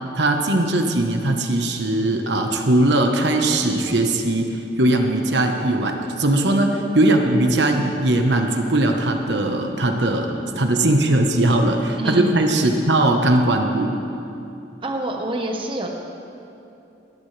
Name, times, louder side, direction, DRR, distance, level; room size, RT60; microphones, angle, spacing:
voice 1, 0.1-13.9, right 1 dB, 80° right, 4 dB, 1.2 m, -19 dB
voice 2, 10.5-11.1 11.9-12.7 14.8-15.9, right 1 dB, 30° right, 1 dB, 1.3 m, -28 dB
22.0 x 14.5 x 3.4 m, 2.8 s
head